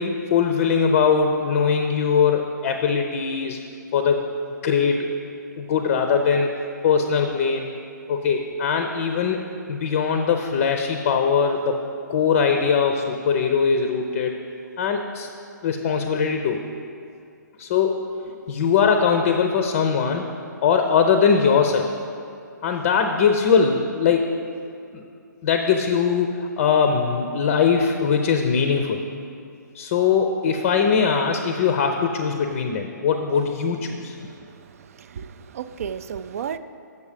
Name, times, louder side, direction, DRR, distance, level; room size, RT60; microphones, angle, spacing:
voice 1, 0.0-3.6 3.9-4.2 4.6-5.1 5.6-6.5 6.8-7.7 8.1-11.8 12.1-14.4 14.8-15.3 15.6-16.6 17.6-18.0 18.5-20.3 20.6-21.9 22.6-24.4 24.9-25.0 25.4-29.0 29.7-34.1, left 6 dB, 35° left, 5 dB, 0.5 m, -21 dB
voice 2, 34.2-36.6, right 8 dB, 45° right, 13 dB, 0.3 m, -34 dB
7.1 x 6.6 x 5.0 m, 2.4 s
figure-of-eight pair, 130°, 10 cm